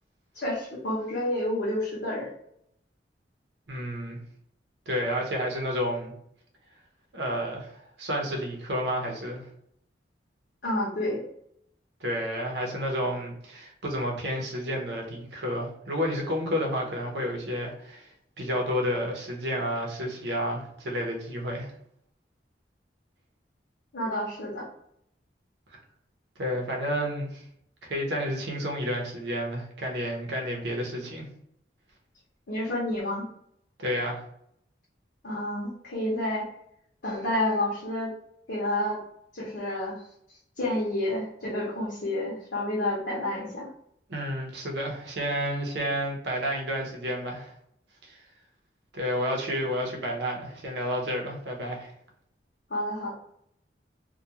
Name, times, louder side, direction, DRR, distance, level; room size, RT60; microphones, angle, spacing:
voice 1, 0.3-2.3 10.6-11.2 23.9-24.7 32.5-33.2 35.2-36.5 37.0-38.1 38.5-39.0 39.3-40.0 40.6-43.7 52.7-53.1, left 1 dB, 65° left, -6 dB, 0.8 m, -29 dB
voice 2, 3.7-4.2 4.9-6.1 7.1-7.7 8.0-9.4 12.0-18.1 18.4-21.7 26.4-27.4 27.8-31.3 33.8-34.2 44.1-47.5 48.0-48.2 48.9-51.9, equal, 70° right, 0 dB, 0.7 m, -30 dB
2.3 x 2.2 x 2.8 m, 0.72 s
head